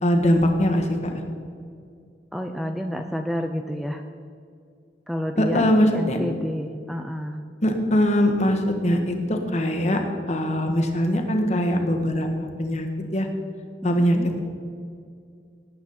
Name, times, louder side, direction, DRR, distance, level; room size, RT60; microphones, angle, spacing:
voice 1, 0.0-1.2 5.4-6.2 7.6-10.0 10.3-12.9 13.1-13.3 13.8-14.4, equal, 40° left, 4 dB, 1.6 m, -22 dB
voice 2, 2.3-4.0 5.1-7.4 13.8-14.3, equal, ahead, 5 dB, 0.5 m, -29 dB
18.5 x 8.6 x 4.3 m, 2.3 s
head